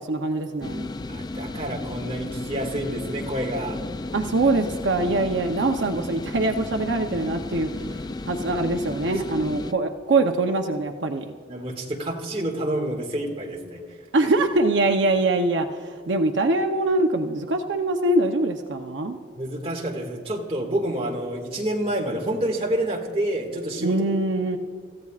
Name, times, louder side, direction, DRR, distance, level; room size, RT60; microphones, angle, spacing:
voice 1, 0.0-0.9 4.1-7.7 8.2-11.3 14.1-19.2 23.8-24.6, right 2 dB, 75° right, 4 dB, 0.8 m, -23 dB
sound 1, 0.6-9.7, left 2 dB, 20° left, 0.3 m, -34 dB
voice 2, 1.1-3.8 9.1-9.2 11.5-13.8 19.4-24.0, right 1 dB, 30° right, 0 dB, 2.0 m, -28 dB
29.0 x 14.5 x 2.4 m, 2.1 s
head